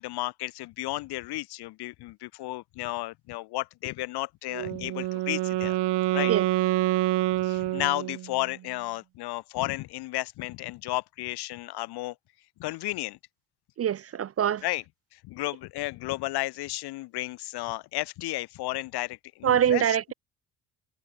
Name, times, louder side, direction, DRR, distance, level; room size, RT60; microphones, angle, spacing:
voice 1, 0.0-5.8 6.1-6.3 7.4-12.1 12.6-13.2 14.6-14.8 15.1-20.1, left 18 dB, 55° left, 0.5 m, -33 dB
Wind instrument woodwind instrument, 4.5-8.4, right 16 dB, 60° right, 1.0 m, -27 dB
voice 2, 13.8-14.6 19.4-20.1, right 9 dB, 30° right, 0.4 m, -24 dB
hypercardioid pair, 50°, 47 cm